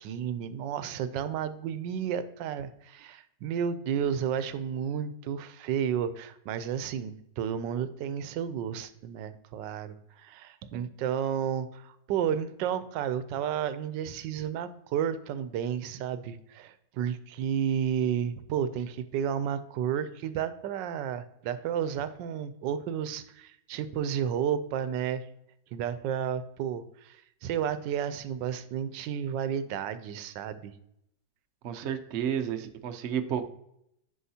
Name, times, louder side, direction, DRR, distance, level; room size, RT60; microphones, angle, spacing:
voice 1, 0.0-25.2 25.7-30.7, right 8 dB, 85° right, 13 dB, 1.3 m, -32 dB
voice 2, 31.6-33.5, right 9 dB, 65° right, 8 dB, 0.7 m, -31 dB
10.0 x 4.7 x 2.8 m, 0.78 s
omnidirectional pair, 1.9 m